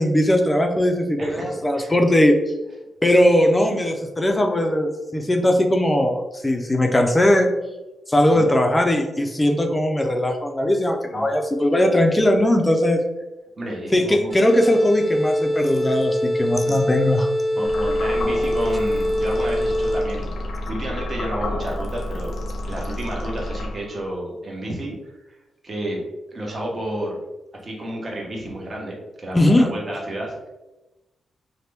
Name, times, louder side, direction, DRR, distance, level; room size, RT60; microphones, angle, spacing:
voice 1, 0.0-2.4 3.0-7.5 8.1-13.0 13.9-17.3 29.3-29.7, left 1 dB, 15° left, 3 dB, 0.4 m, -19 dB
voice 2, 1.2-1.9 8.3-8.5 11.1-11.3 13.6-14.3 16.7-16.8 17.6-22.4 22.6-25.1 25.6-26.0 26.3-27.2 27.6-30.5, right 1 dB, 40° right, -2 dB, 0.9 m, -31 dB
sound 1, 14.3-20.2, left 1 dB, 70° right, 1.0 m, -23 dB
sound 2, 17.6-24.1, left 1 dB, 70° left, 0.6 m, -30 dB
2.9 x 2.1 x 3.2 m, 1.0 s
cardioid pair, 95°, 0 cm